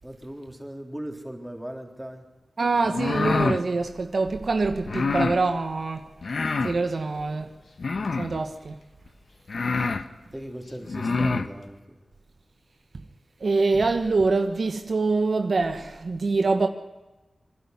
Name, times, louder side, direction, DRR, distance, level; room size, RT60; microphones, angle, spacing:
voice 1, 0.0-2.3 9.5-9.7 10.3-12.0, right 1 dB, 10° right, 3.7 m, -39 dB
voice 2, 2.6-6.1 6.6-7.6 8.2-8.8 13.4-16.7, right 3 dB, 65° right, 1.3 m, -25 dB
sound 1, 2.9-3.6 4.9-5.4 6.2-6.8 7.8-8.4 9.1-9.2 9.5-10.0 10.8-11.5, left 4 dB, 70° left, 1.1 m, -26 dB
25.0 x 11.5 x 9.7 m
wide cardioid pair, 65°, 0 cm